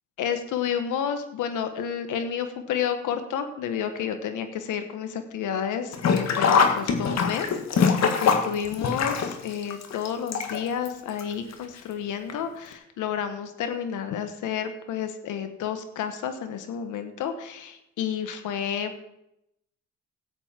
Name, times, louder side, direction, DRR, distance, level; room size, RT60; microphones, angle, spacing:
voice 1, 0.2-7.5 7.8-19.0, left 8 dB, 85° left, 8 dB, 1.4 m, -30 dB
Sink (filling or washing), 5.9-10.9 11.2-11.3 12.3-12.4 12.7-12.8, left 6 dB, 60° left, 1.7 m, -23 dB
17.5 x 8.0 x 4.4 m, 0.81 s
cardioid pair, 90°, 30 cm